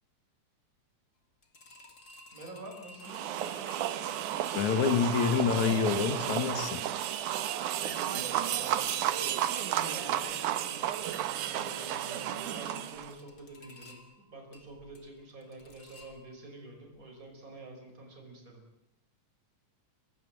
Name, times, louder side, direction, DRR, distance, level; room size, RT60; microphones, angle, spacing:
sound 1, 1.4-16.6 17.0-17.1 17.4-17.5, left 2 dB, 30° left, 3.0 m, -56 dB
voice 1, 2.3-3.3 7.7-10.7 11.4-18.6, right 2 dB, 25° right, 1 dB, 5.6 m, -48 dB
sound 2, 3.0-13.1, right 11 dB, 80° right, 2.6 m, -32 dB
voice 2, 4.5-6.8, left 6 dB, 70° left, 10 dB, 3.1 m, -27 dB
25.5 x 18.5 x 7.8 m, 0.84 s
omnidirectional pair, 3.5 m